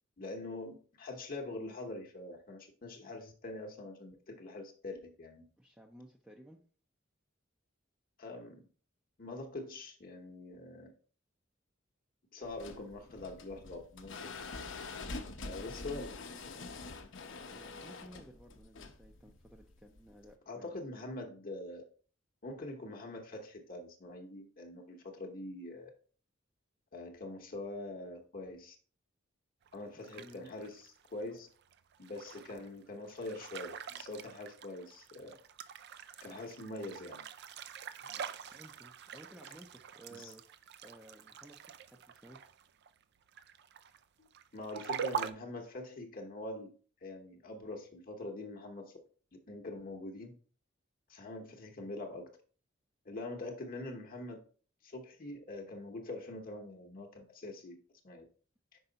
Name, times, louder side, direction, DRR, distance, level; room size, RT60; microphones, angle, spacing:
voice 1, 0.2-5.5 8.2-8.6 9.2-10.9 12.3-14.3 15.4-16.2 20.5-21.8 22.4-25.9 26.9-28.8 29.7-31.5 32.0-35.4 36.2-37.2 38.0-38.2 40.1-40.3 44.2-46.7 47.0-48.9 49.3-50.3 51.1-52.3 53.0-54.4 54.8-57.7 58.0-58.2, left 2 dB, 45° left, 2 dB, 1.0 m, -44 dB
voice 2, 5.6-6.6 17.5-20.7 29.9-30.5 38.5-42.4, right 1 dB, 5° right, 1 dB, 0.5 m, -56 dB
sound 1, 12.4-20.3, left 3 dB, 70° left, 0.8 m, -46 dB
sound 2, 29.7-43.0 43.3-45.3, right 7 dB, 60° right, 0.4 m, -44 dB
5.5 x 4.6 x 3.9 m, 0.41 s
head